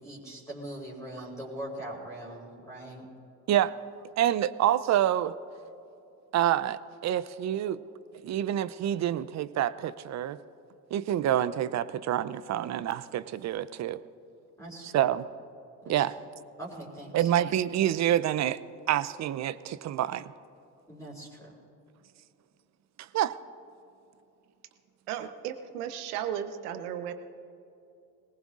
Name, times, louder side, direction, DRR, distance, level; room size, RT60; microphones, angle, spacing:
voice 1, 0.0-3.0 14.6-15.1 15.8-16.0 16.6-17.3 20.9-21.5, right 1 dB, 5° left, -5 dB, 3.8 m, -41 dB
voice 2, 4.2-5.3 6.3-7.8 8.2-10.4 10.9-14.0 14.8-15.3 15.9-16.1 17.1-18.6 18.9-20.2 23.1-23.3, right 11 dB, 40° right, 16 dB, 0.5 m, -27 dB
voice 3, 25.1-27.1, right 9 dB, 80° right, 9 dB, 1.0 m, -35 dB
21.5 x 19.0 x 2.5 m, 2.7 s
hypercardioid pair, 70°, 45 cm